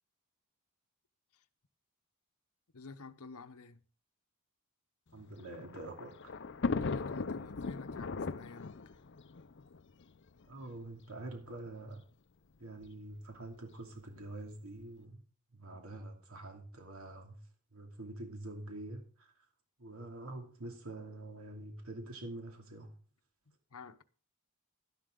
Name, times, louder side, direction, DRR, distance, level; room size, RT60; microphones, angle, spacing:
voice 1, 2.7-3.8 6.6-9.0 23.7-24.0, left 4 dB, 80° left, 0.9 m, -50 dB
voice 2, 5.1-6.3 10.5-12.0 12.6-15.2 15.5-19.5 19.8-23.0, right 2 dB, 70° right, 2.7 m, -46 dB
Thunder, 5.2-10.5 11.3-11.4 11.7-11.8 12.8-13.1, left 4 dB, 55° left, 0.6 m, -38 dB
12.5 x 11.5 x 3.8 m
head